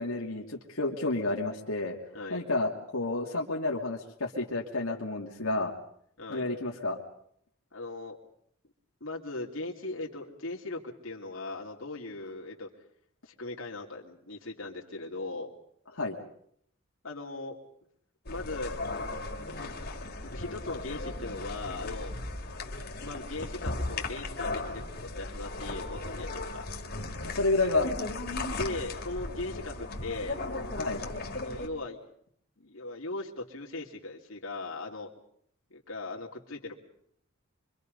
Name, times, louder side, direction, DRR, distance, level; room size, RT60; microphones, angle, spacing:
voice 1, 0.0-2.0 2.3-5.7 6.3-7.0 16.0-16.2 27.2-27.9 30.8-31.0, left 2 dB, 85° left, -1 dB, 2.6 m, -30 dB
voice 2, 2.1-2.4 6.2-6.5 7.7-8.2 9.0-12.7 13.3-15.5 17.0-17.6 18.2-18.8 19.4-19.8 20.2-22.1 23.0-26.7 28.5-30.4 31.3-32.0 32.6-35.1 35.7-36.7, left 2 dB, 65° left, -1 dB, 3.0 m, -39 dB
sound 1, 18.2-31.7, left 2 dB, 50° left, 2.8 m, -37 dB
26.0 x 24.5 x 5.4 m, 0.67 s
head